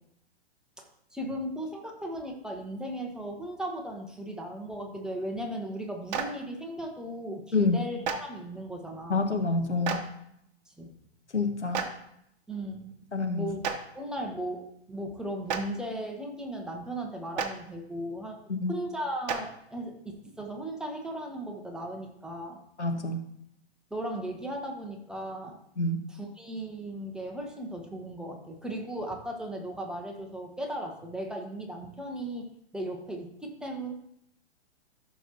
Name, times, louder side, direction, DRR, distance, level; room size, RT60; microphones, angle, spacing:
voice 1, 0.8-9.3 10.7-10.9 12.5-12.9 13.3-13.6 13.9-18.4 18.7-22.6 23.9-25.6 26.1-32.5 32.7-33.9, right 1 dB, ahead, 1 dB, 1.0 m, -37 dB
Clapping, 6.1-6.2 8.0-8.1 9.8-10.0 11.7-11.8 13.6-13.7 15.4-15.6 17.3-17.5 19.3-19.4, right 7 dB, 40° right, 1.2 m, -29 dB
voice 2, 9.1-10.0 11.3-11.9 13.1-13.5 18.5-18.7 22.8-23.2 25.8-26.0, left 3 dB, 90° left, 5 dB, 1.3 m, -27 dB
13.5 x 6.3 x 2.9 m, 0.74 s
figure-of-eight pair, 115°, 34 cm